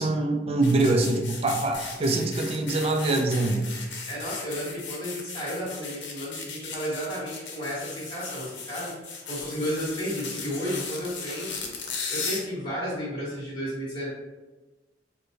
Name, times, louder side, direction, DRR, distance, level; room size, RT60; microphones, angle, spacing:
voice 1, 0.0-3.7, right 2 dB, 35° right, 3 dB, 0.4 m, -24 dB
sound 1, 0.6-12.4, left 5 dB, 80° left, 0.6 m, -37 dB
voice 2, 4.1-8.9 9.2-11.7 12.1-14.1, equal, 30° left, -10 dB, 1.3 m, -32 dB
4.6 x 2.1 x 2.7 m, 1.2 s
head